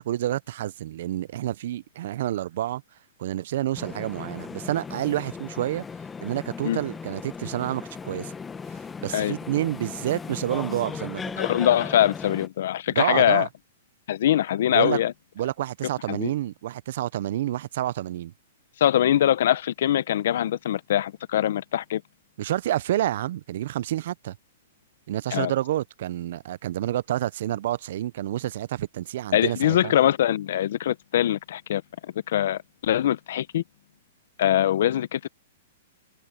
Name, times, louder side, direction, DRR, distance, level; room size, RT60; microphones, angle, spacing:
voice 1, 0.0-2.8 3.2-5.8 6.2-8.3 9.0-11.4 12.9-13.5 14.7-15.0 15.4-18.3 22.4-24.4 25.1-29.9, right 13 dB, 60° right, 0.6 m, -29 dB
sound 1, 3.8-12.5, left 5 dB, 10° left, 1.1 m, -37 dB
voice 2, 11.4-13.5 14.1-15.1 16.1-16.3 18.8-22.0 25.3-25.5 29.3-31.8 32.3-33.6 34.4-35.3, left 11 dB, 65° left, 0.8 m, -23 dB
hypercardioid pair, 140°, 0 cm